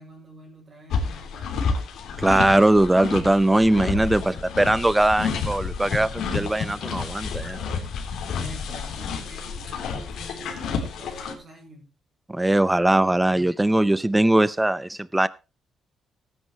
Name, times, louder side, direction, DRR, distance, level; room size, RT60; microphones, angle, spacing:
voice 1, 0.0-1.6 4.0-4.3 8.3-11.9 13.0-13.4, right 1 dB, 35° right, -4 dB, 5.1 m, -46 dB
sound 1, 0.9-11.3, left 5 dB, 75° left, 3.5 m, -30 dB
voice 2, 2.2-4.2 4.6-7.6 12.3-15.3, right 1 dB, 10° right, 17 dB, 0.6 m, -20 dB
18.0 x 9.8 x 3.1 m, 0.29 s
cardioid pair, 130°, 0 cm